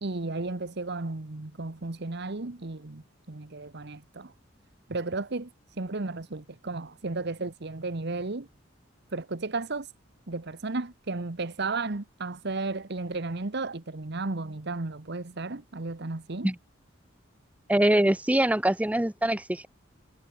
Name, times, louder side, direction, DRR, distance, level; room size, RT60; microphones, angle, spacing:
voice 1, 0.0-4.3 4.9-5.5 5.8-8.5 9.1-9.9 10.3-16.5, right 3 dB, 60° right, 1.2 m, -34 dB
voice 2, 17.7-19.7, right 1 dB, 5° right, 0.6 m, -23 dB
head